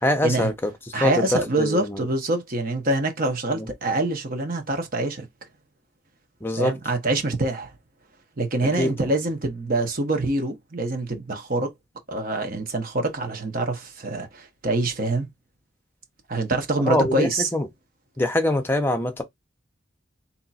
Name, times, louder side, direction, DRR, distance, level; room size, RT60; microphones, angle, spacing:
voice 1, 0.0-0.7 1.0-2.0 3.5-3.7 6.4-6.8 8.8-9.1 16.8-17.7 18.2-19.2, left 1 dB, 10° left, 0.7 m, -24 dB
voice 2, 0.9-5.3 6.6-7.7 8.4-11.7 12.1-15.3 16.3-17.5, right 2 dB, 45° right, 1.1 m, -25 dB
3.6 x 2.9 x 4.1 m
head